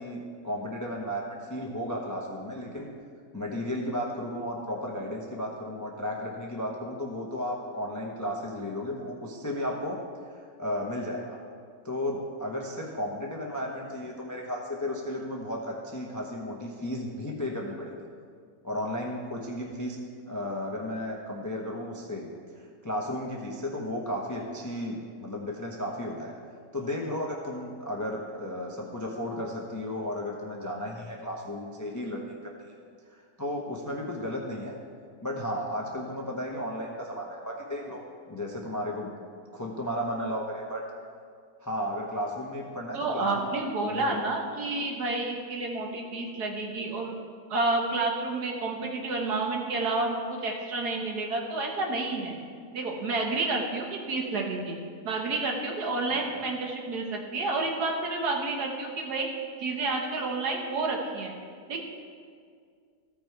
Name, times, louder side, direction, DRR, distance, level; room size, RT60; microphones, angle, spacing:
voice 1, 0.0-2.9 3.3-10.0 10.3-11.4 11.8-17.9 18.6-20.0 20.3-26.3 26.7-32.5 33.1-34.8 35.2-38.0 38.3-39.1 39.5-40.8 41.6-43.5 43.9-44.2 56.1-56.4, left 1 dB, 20° left, -1 dB, 0.4 m, -34 dB
voice 2, 42.9-47.1 47.5-52.4 52.7-54.8 55.0-59.3 59.6-61.3 61.7-61.8, right 3 dB, 65° right, 0 dB, 1.7 m, -30 dB
14.5 x 5.2 x 4.6 m, 2.1 s
omnidirectional pair, 1.9 m